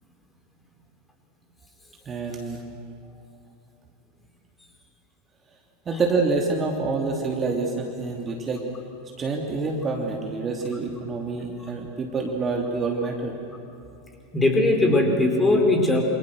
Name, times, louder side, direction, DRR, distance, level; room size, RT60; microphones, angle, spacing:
voice 1, 2.0-2.6 5.8-8.6 9.2-13.4, right 3 dB, 25° right, 1 dB, 3.0 m, -27 dB
voice 2, 14.3-16.0, left 2 dB, 15° left, 2 dB, 4.8 m, -20 dB
28.5 x 27.0 x 6.7 m, 2.7 s
figure-of-eight pair, 85°, 0 cm